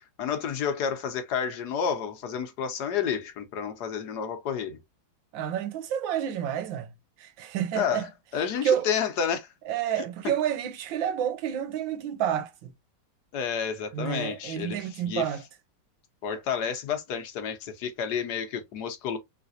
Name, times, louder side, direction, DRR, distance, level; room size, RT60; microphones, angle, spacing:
voice 1, 0.2-4.8 7.7-8.0 8.3-9.5 13.3-14.8 15.0-15.2 16.2-19.2, left 7 dB, 65° left, 1.2 m, -30 dB
voice 2, 5.3-6.9 7.2-8.1 8.6-8.9 9.7-12.7 13.9-15.4, right 9 dB, 85° right, 1.5 m, -29 dB
3.4 x 3.2 x 2.5 m
omnidirectional pair, 2.0 m